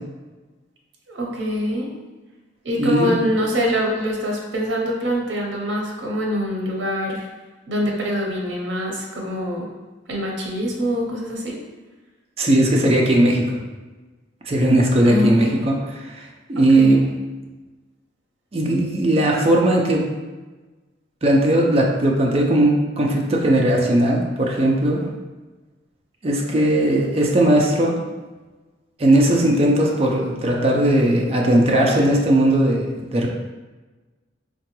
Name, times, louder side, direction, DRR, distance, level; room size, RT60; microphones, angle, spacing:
voice 1, 1.1-1.9 2.6-7.3 7.7-9.7 10.1-11.6 15.1-15.7 16.6-17.0, equal, 75° right, -2 dB, 0.7 m, -24 dB
voice 2, 2.8-3.2 12.4-13.6 14.5-16.2 16.5-17.1 18.5-20.0 21.2-25.0 26.2-28.0 29.0-33.3, right 1 dB, 30° right, -1 dB, 0.4 m, -18 dB
3.7 x 2.2 x 2.9 m, 1.2 s
head